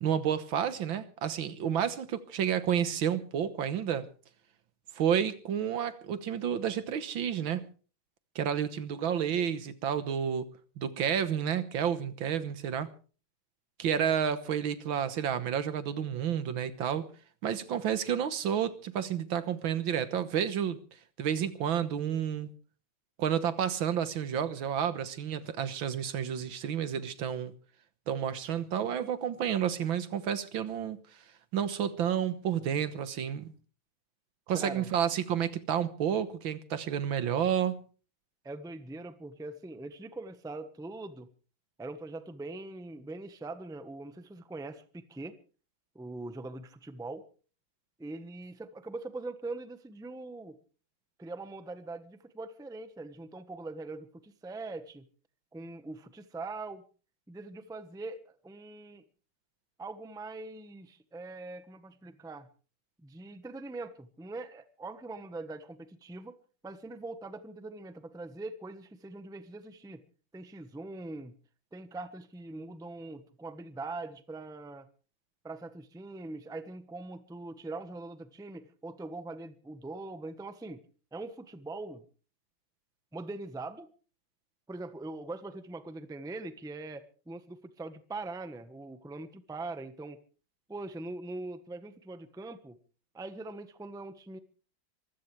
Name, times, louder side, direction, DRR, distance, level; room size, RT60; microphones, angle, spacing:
voice 1, 0.0-4.1 5.0-7.7 8.4-10.5 10.8-12.9 13.8-17.1 17.4-20.8 21.2-22.5 23.2-27.5 28.1-31.0 31.5-33.5 34.5-37.8, right 8 dB, 75° right, 2.0 m, -30 dB
voice 2, 34.5-34.9 38.4-41.3 41.8-45.4 45.9-47.3 48.0-50.6 51.2-55.1 55.5-56.8 57.3-59.0 59.8-62.5 63.0-66.4 66.6-70.0 70.3-71.3 71.7-74.9 75.4-80.8 81.1-82.0 83.1-83.9 84.7-90.2 90.7-92.8 93.1-94.4, right 2 dB, 5° right, 0.8 m, -42 dB
24.5 x 16.0 x 3.3 m
omnidirectional pair, 2.2 m